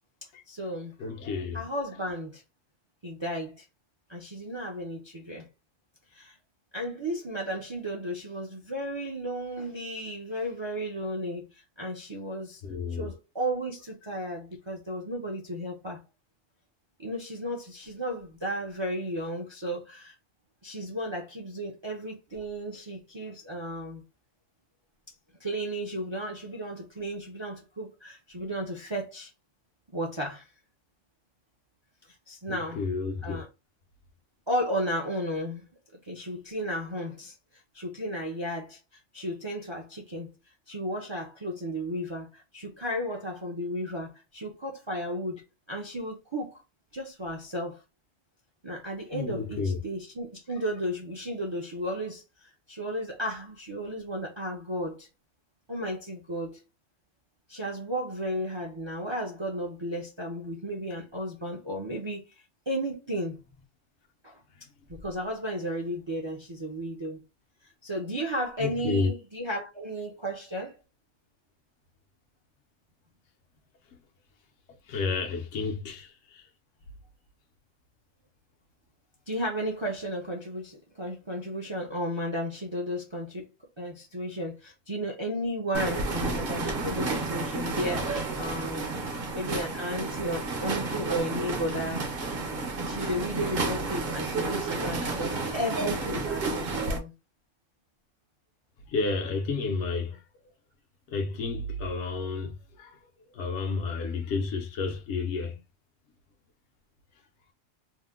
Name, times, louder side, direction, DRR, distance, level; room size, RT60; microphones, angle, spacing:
voice 1, 0.5-0.9 1.5-2.4 3.0-3.6 4.1-5.5 6.1-6.4 6.7-12.6 12.9-16.0 17.0-20.1 20.6-24.0 25.4-29.3 29.9-30.5 32.3-32.8 33.2-33.5 34.5-35.7 36.0-37.3 37.7-38.8 39.1-40.3 40.7-45.4 45.7-46.6 46.9-47.8 48.6-55.1 55.7-56.6 57.5-62.2 62.7-63.4 64.2-64.4 64.9-67.2 67.8-70.8 79.3-83.5 83.8-89.0 89.3-92.0 92.8-97.1, equal, 35° right, 0.5 m, -34 dB
voice 2, 1.0-1.6 12.6-13.1 32.5-33.4 49.1-49.8 68.6-69.1 74.9-76.4 90.0-90.3 98.9-100.2 101.1-102.9 103.3-105.6, left 4 dB, 70° left, 1.0 m, -31 dB
sound 1, 85.7-97.0, right 3 dB, 55° right, 0.9 m, -31 dB
2.8 x 2.1 x 3.5 m
omnidirectional pair, 1.3 m